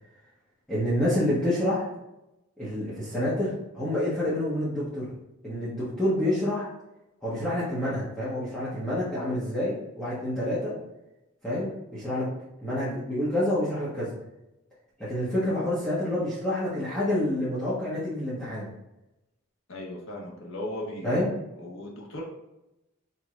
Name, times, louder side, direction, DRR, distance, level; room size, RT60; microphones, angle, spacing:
voice 1, 0.7-1.9 2.6-5.1 5.4-6.7 7.2-10.7 11.4-12.3 12.6-14.1 15.0-18.7 21.0-21.4, left 1 dB, 5° left, -11 dB, 1.1 m, -28 dB
voice 2, 19.7-21.3 21.6-22.2, left 1 dB, 65° left, -2 dB, 1.1 m, -37 dB
4.7 x 2.8 x 3.6 m, 0.93 s
head